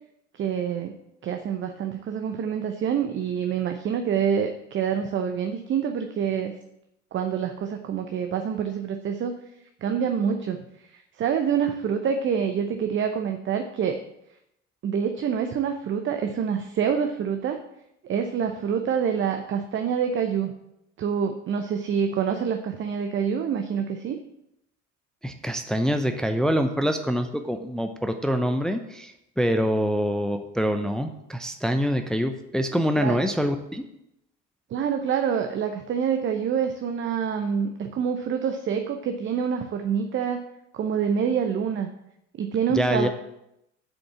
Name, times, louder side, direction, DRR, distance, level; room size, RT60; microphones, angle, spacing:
voice 1, 0.3-0.9 1.2-6.5 7.1-9.4 9.8-14.0 14.8-17.6 18.0-20.5 21.0-24.2 33.0-33.2 34.7-40.4 40.7-41.9 42.4-43.1, right 7 dB, 30° right, 6 dB, 0.8 m, -26 dB
voice 2, 25.2-33.8 42.7-43.1, equal, ahead, 7 dB, 0.6 m, -25 dB
7.5 x 5.3 x 7.0 m, 0.82 s
figure-of-eight pair, 65°, 38 cm